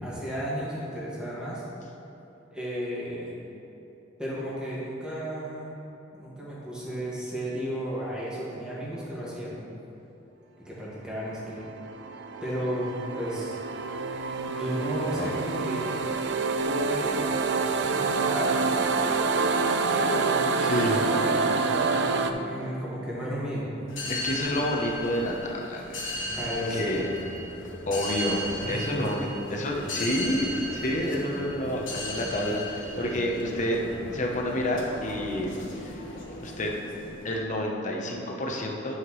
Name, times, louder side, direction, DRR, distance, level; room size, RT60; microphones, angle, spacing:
voice 1, 0.0-1.6 2.5-3.3 4.2-5.8 6.1-9.6 10.7-11.7 12.4-13.6 14.5-15.9 16.6-17.2 17.9-18.7 19.9-23.7 26.3-26.9 28.6-29.0, equal, 5° right, -8 dB, 1.8 m, -33 dB
sound 1, 11.6-22.3, right 4 dB, 60° right, 0.4 m, -27 dB
voice 2, 20.6-21.0 24.1-26.0 26.7-27.1 27.9-33.8 34.1-36.0 36.4-36.7 37.2-39.0, left 1 dB, 40° left, 0 dB, 0.9 m, -29 dB
sound 2, 23.9-37.4, left 1 dB, 85° left, 1.4 m, -36 dB
11.0 x 5.8 x 3.2 m, 3.0 s
head